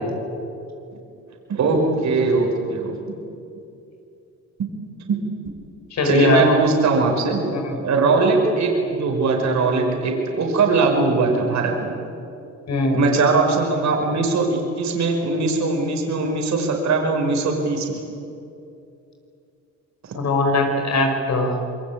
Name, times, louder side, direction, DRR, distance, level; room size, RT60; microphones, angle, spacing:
voice 1, 1.5-3.0 5.1-5.2 6.0-7.4 7.8-11.9 12.9-18.0, right 3 dB, 65° right, 1 dB, 5.3 m, -20 dB
voice 2, 5.9-6.5 7.5-7.8 12.7-13.0 20.1-21.5, left 2 dB, 60° left, 3 dB, 5.7 m, -20 dB
26.0 x 22.0 x 8.8 m, 2.7 s
cardioid pair, 90°, 30 cm